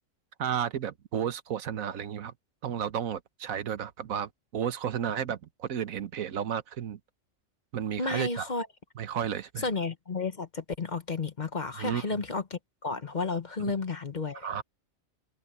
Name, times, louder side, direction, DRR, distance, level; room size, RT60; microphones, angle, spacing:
voice 1, 0.4-2.3 2.6-7.0 7.7-8.5 9.0-9.6 11.8-12.0 13.6-13.7 14.3-14.6, right 9 dB, 85° right, 1.4 m, -32 dB
voice 2, 8.0-8.7 9.6-14.6, left 4 dB, 35° left, 1.1 m, -32 dB
omnidirectional pair, 1.4 m